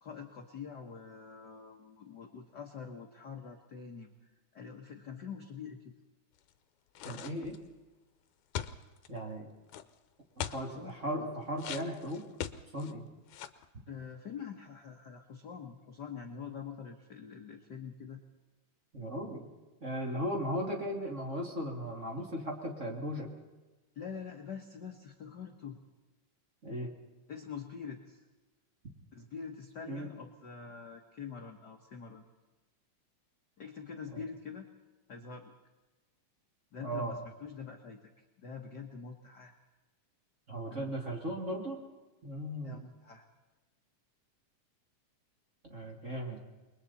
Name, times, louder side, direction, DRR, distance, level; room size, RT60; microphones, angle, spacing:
voice 1, 0.0-4.1 4.5-5.9 10.4-11.3 13.9-18.2 23.9-25.8 27.3-28.2 29.1-32.2 33.6-34.7 35.1-35.5 36.7-38.0 38.4-39.5 40.7-40.8 42.6-43.2, left 6 dB, 50° left, 2 dB, 1.4 m, -45 dB
sound 1, 7.0-7.7 8.5-9.1 9.7-9.8 10.4-10.7 11.6-12.9 13.3-13.7, left 10 dB, 75° left, 2.2 m, -40 dB
voice 2, 7.0-7.6 9.1-9.5 10.5-12.2 12.7-13.1 18.9-19.5 19.8-23.3 26.6-26.9 29.9-30.1 34.1-34.2 36.8-37.1 40.5-41.8 42.2-42.9 45.7-46.4, equal, 25° right, 0 dB, 2.4 m, -37 dB
28.5 x 22.0 x 4.2 m, 1.2 s
omnidirectional pair, 3.4 m